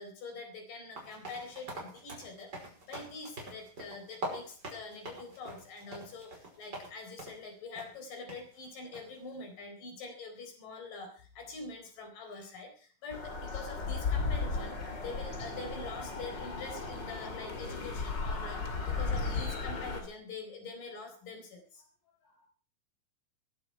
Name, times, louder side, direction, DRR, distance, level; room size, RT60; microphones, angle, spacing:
voice 1, 0.0-6.3 6.6-11.1 11.4-21.8, left 3 dB, 60° left, 4 dB, 5.8 m, -45 dB
sound 1, 0.9-6.9 7.2-7.4 7.7-7.9 8.3-8.4 8.9-9.2, right 1 dB, 25° right, 5.8 m, -44 dB
sound 2, 13.1-20.0, left 4 dB, 35° left, 2.6 m, -35 dB
21.5 x 11.5 x 4.6 m, 0.41 s
omnidirectional pair, 4.3 m